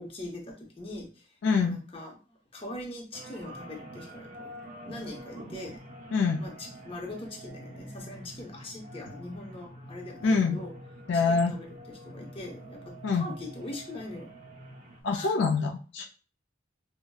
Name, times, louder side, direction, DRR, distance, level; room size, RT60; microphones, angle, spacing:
voice 1, 0.0-4.6 4.8-5.8 6.4-10.7 11.1-14.3 15.1-15.3, left 1 dB, 30° left, 0 dB, 0.8 m, -42 dB
voice 2, 1.4-1.8 6.1-6.4 10.2-10.6 11.1-11.5 13.0-13.2 15.0-16.0, left 4 dB, 75° left, 3 dB, 0.4 m, -25 dB
sound 1, 3.1-15.0, right 1 dB, 40° right, 0.7 m, -46 dB
4.8 x 2.1 x 2.2 m, 0.38 s
head